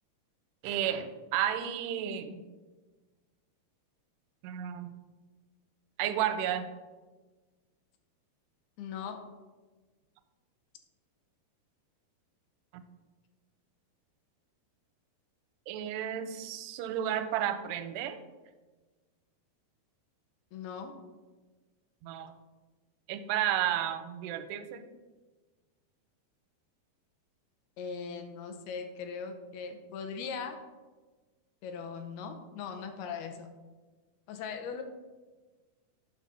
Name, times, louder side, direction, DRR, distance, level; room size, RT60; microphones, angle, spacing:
voice 1, 0.6-2.4 4.4-4.9 6.0-6.7 12.7-12.8 15.7-18.2 22.0-22.3 23.1-24.9, right 10 dB, 85° right, 9 dB, 2.6 m, -32 dB
voice 2, 8.8-9.2 20.5-20.9 27.8-30.6 31.6-33.5 34.3-34.8, left 6 dB, 80° left, 6 dB, 2.6 m, -39 dB
9.0 x 6.4 x 4.1 m, 1.3 s
omnidirectional pair, 4.7 m